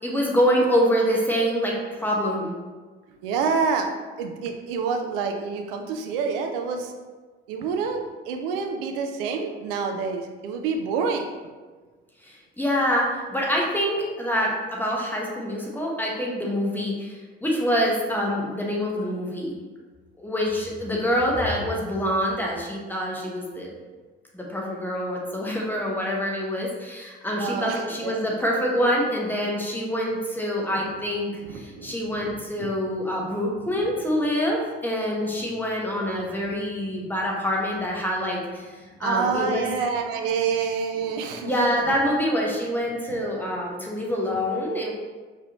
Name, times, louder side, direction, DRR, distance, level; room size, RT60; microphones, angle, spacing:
voice 1, 0.0-2.6 12.2-19.6 20.2-23.7 24.3-38.7 39.0-39.7 41.4-44.9, equal, 5° left, -2 dB, 1.0 m, -26 dB
voice 2, 3.2-3.9 4.2-6.9 7.5-11.3 27.4-28.2 31.5-32.3 32.6-32.7 36.5-36.6 39.0-41.5, right 5 dB, 65° right, 5 dB, 0.6 m, -27 dB
4.6 x 2.9 x 3.0 m, 1.3 s
figure-of-eight pair, 55°, 30 cm